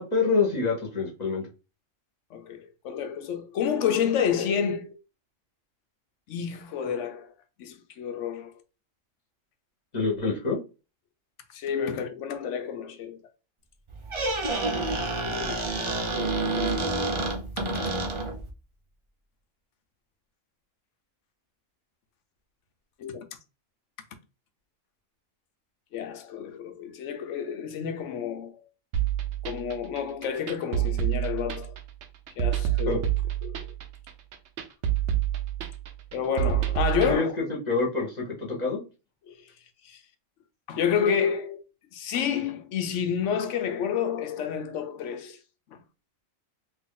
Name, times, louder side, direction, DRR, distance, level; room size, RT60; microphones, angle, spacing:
voice 1, 0.0-1.5 9.9-10.6 15.3-15.6 32.9-33.0 37.0-38.8, left 4 dB, 35° left, 1.0 m, -27 dB
voice 2, 2.3-5.0 6.3-7.3 7.6-8.5 11.5-13.2 16.1-17.2 17.6-17.7 23.0-23.3 25.9-28.7 29.4-31.7 32.4-33.1 33.4-33.6 36.1-37.4 39.3-39.4 39.8-40.0 40.7-41.6 41.9-45.4 45.7-45.8, left 7 dB, 70° left, 0.9 m, -29 dB
Squeak, 13.9-18.5, right 2 dB, 40° right, 0.4 m, -28 dB
sound 1, 28.9-37.1, right 11 dB, 65° right, 0.8 m, -28 dB
2.9 x 2.6 x 3.7 m
omnidirectional pair, 1.4 m